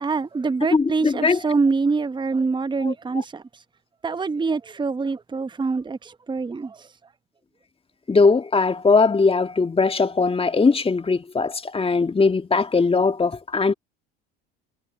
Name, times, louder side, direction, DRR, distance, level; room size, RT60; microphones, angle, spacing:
voice 1, 0.0-3.4 4.0-6.8, right 4 dB, 15° right, 1.0 m, -25 dB
voice 2, 0.7-1.4 2.8-3.2 8.1-13.7, left 4 dB, 20° left, 1.9 m, -20 dB
hypercardioid pair, 70°, 29 cm